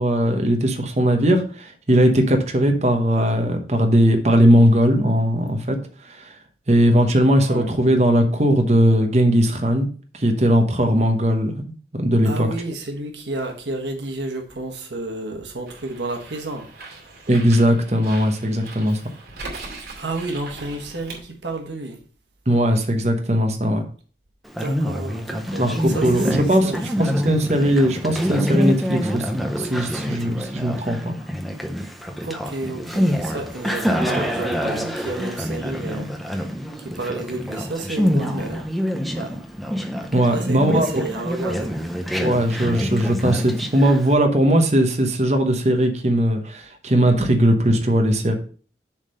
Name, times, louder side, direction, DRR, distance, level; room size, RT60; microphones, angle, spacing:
voice 1, 0.0-6.4 6.7-9.9 10.1-12.5 17.3-19.0 22.5-23.8 25.6-26.7 27.0-31.1 40.1-40.9 42.2-48.3, equal, 40° right, 1.0 m, -19 dB
voice 2, 12.2-16.7 20.0-22.0 24.6-27.2 32.2-36.5 36.8-38.7 39.1-39.4 40.3-41.8, right 2 dB, 90° right, 1.3 m, -31 dB
Bird, 15.7-21.2, right 3 dB, 70° right, 2.5 m, -39 dB
Conversation, 24.4-44.1, equal, ahead, 0.6 m, -26 dB
7.2 x 3.7 x 6.4 m
head